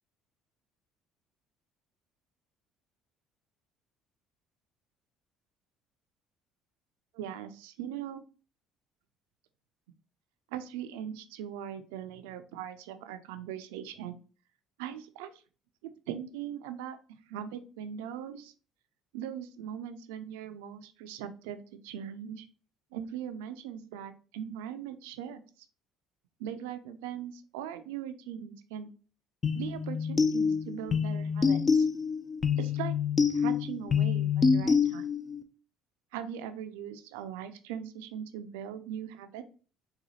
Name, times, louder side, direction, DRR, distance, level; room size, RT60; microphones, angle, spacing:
voice 1, 7.1-8.2 10.5-14.2 14.8-15.3 15.8-17.0 17.3-18.5 19.1-22.5 22.9-25.4 26.4-28.9 29.6-31.9 32.6-32.9 33.3-35.1 36.1-39.4, right 9 dB, 85° right, 10 dB, 0.4 m, -40 dB
sound 1, 29.4-35.4, left 5 dB, 35° left, 0.5 m, -27 dB
4.0 x 2.3 x 2.9 m, 0.37 s
supercardioid pair, 75°, 0 cm